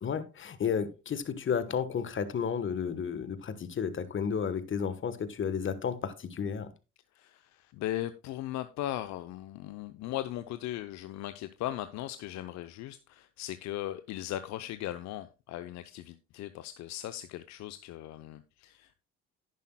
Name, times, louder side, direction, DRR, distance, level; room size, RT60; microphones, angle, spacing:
voice 1, 0.0-6.7, left 7 dB, 40° left, 1.2 m, -32 dB
voice 2, 7.1-19.0, left 13 dB, 60° left, 0.7 m, -38 dB
10.5 x 10.5 x 2.2 m
hypercardioid pair, 55°, 31 cm